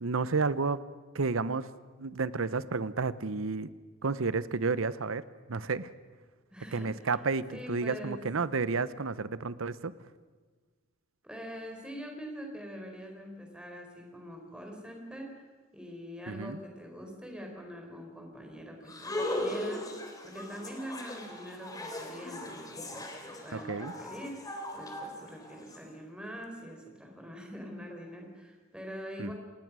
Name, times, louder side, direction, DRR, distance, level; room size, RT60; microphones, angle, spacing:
voice 1, 0.0-0.8 1.1-1.7 2.0-3.7 4.0-5.2 5.5-5.9 6.7-9.9 16.3-16.6 23.5-23.9 29.2-29.3, right 4 dB, 80° right, 16 dB, 0.9 m, -31 dB
voice 2, 6.5-8.3 11.2-15.3 15.7-19.9 20.2-29.3, equal, 5° right, 1 dB, 4.4 m, -44 dB
sound 1, 18.9-25.8, left 1 dB, 20° left, 3.0 m, -38 dB
27.5 x 19.5 x 6.3 m, 1.4 s
head